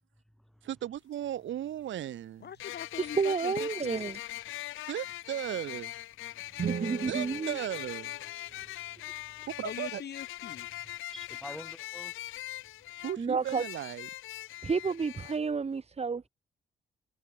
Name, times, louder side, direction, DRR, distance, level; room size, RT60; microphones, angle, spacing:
voice 1, 0.6-2.5 4.9-5.9 7.1-8.1 9.6-10.0 13.0-14.1, right 11 dB, 70° right, 3.3 m, -36 dB
sound 1, 1.0-1.1 2.6-15.4, left 15 dB, 90° left, 6.0 m, -41 dB
voice 2, 2.4-4.0 9.6-10.7, left 8 dB, 55° left, 6.0 m, -42 dB
voice 3, 3.2-4.2 6.7-7.6 13.2-13.6 14.6-16.3, right 5 dB, 30° right, 2.3 m, -30 dB
voice 4, 6.3-6.7 8.5-9.5 10.7-12.3, equal, ahead, 6.4 m, -50 dB
sound 2, 6.5-8.7, right 7 dB, 50° right, 2.1 m, -38 dB
cardioid pair, 90°, 20 cm